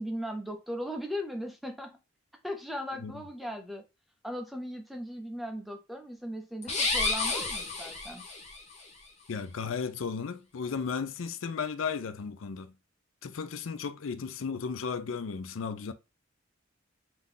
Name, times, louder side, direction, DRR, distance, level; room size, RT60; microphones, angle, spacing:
voice 1, 0.0-1.9 2.4-3.8 4.2-8.2, equal, ahead, 0.6 m, -38 dB
sound 1, 6.6-8.6, left 3 dB, 35° left, 1.1 m, -30 dB
voice 2, 9.3-12.7 13.2-15.9, left 5 dB, 90° left, 0.5 m, -35 dB
3.6 x 2.8 x 3.7 m
head